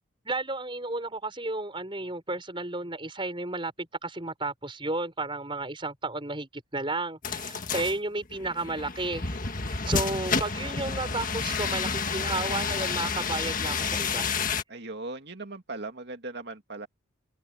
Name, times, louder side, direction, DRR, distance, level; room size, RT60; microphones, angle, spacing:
voice 1, 0.2-9.4 9.7-14.3, right 2 dB, 25° right, 5.9 m, -33 dB
sound 1, 7.2-14.6, left 5 dB, 40° left, 1.7 m, -30 dB
voice 2, 14.7-16.9, right 2 dB, 55° right, 2.4 m, -38 dB
head